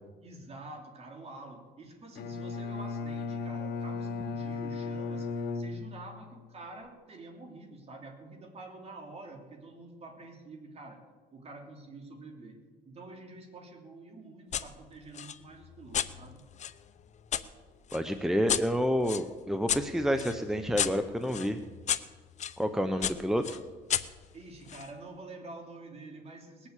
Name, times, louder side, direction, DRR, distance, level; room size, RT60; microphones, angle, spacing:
voice 1, 0.2-11.0 11.3-16.4 22.9-23.1 24.3-26.7, right 2 dB, 35° right, 3 dB, 3.3 m, -47 dB
Bowed string instrument, 2.2-6.4, left 4 dB, 75° left, 1.1 m, -36 dB
sound 1, 14.5-14.7 15.1-17.5 17.9-22.6 23.0-24.9, left 9 dB, 45° left, 0.7 m, -34 dB
voice 2, 17.9-21.6 22.6-23.6, equal, 5° right, 8 dB, 0.8 m, -29 dB
20.0 x 7.4 x 8.2 m, 1.4 s
cardioid pair, 110°, 17 cm